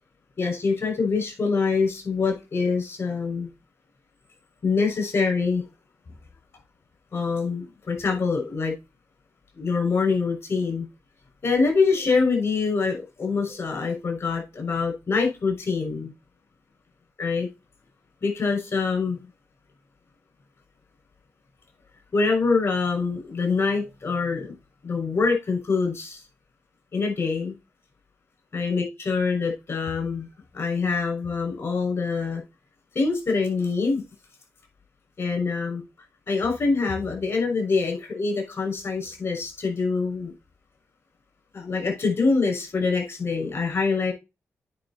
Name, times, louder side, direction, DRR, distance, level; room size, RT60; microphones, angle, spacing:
voice 1, 0.4-3.5 4.6-5.6 7.1-8.7 9.5-10.9 11.4-16.1 17.2-17.5 18.2-19.2 22.1-24.5 24.8-26.2 26.9-27.5 28.5-30.3 30.5-32.4 32.9-34.0 35.2-35.8 36.3-40.3 41.5-44.1, left 4 dB, 55° left, 6.1 m, -25 dB
9.8 x 5.3 x 4.3 m
cardioid pair, 85°, 5 cm